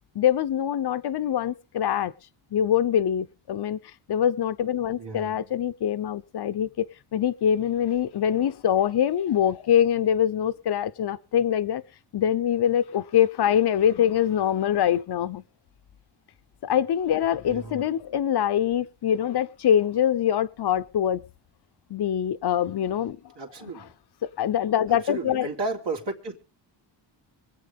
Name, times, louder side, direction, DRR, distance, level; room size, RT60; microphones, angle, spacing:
voice 1, 0.1-2.1 2.5-3.8 4.1-11.8 12.1-15.4 16.6-21.2 21.9-23.2 23.8-23.9 24.4-25.5, left 9 dB, 55° left, 0.9 m, -24 dB
voice 2, 5.0-5.5 17.4-17.9 23.3-23.9 24.9-26.4, right 3 dB, 60° right, 3.2 m, -33 dB
25.0 x 8.6 x 3.6 m
cardioid pair, 75°, 48 cm